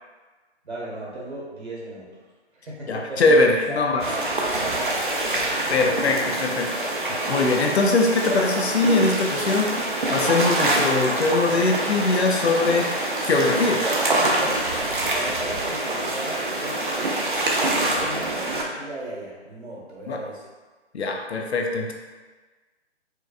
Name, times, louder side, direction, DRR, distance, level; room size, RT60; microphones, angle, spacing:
voice 1, 0.6-2.2 2.5-3.8 4.1-5.4 15.0-20.5, right 1 dB, 65° right, -4 dB, 1.3 m, -36 dB
voice 2, 2.9-4.0 5.4-12.9 13.2-13.8 20.1-20.2 20.9-21.9, left 3 dB, 65° left, 2 dB, 0.6 m, -22 dB
sound 1, 4.0-18.6, right 2 dB, 45° right, 0.5 m, -25 dB
4.5 x 2.2 x 2.4 m, 1.3 s
hypercardioid pair, 175°, 35 cm